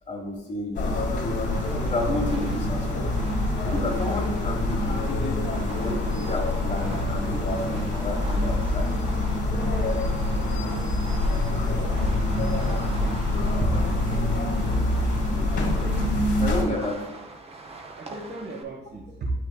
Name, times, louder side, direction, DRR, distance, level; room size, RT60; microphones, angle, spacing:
voice 1, 0.1-1.0 1.7-3.1 3.6-8.9 16.4-17.1, left 2 dB, 35° left, 0 dB, 1.2 m, -31 dB
sound 1, 0.7-16.6, left 2 dB, 60° left, 1.7 m, -25 dB
Fireworks, 1.3-18.6, right 3 dB, 30° right, 0.8 m, -42 dB
voice 2, 11.7-13.2 13.6-13.7 17.9-19.3, right 3 dB, 55° right, -3 dB, 1.1 m, -36 dB
7.6 x 6.0 x 2.2 m, 0.95 s
cardioid pair, 90°, 20 cm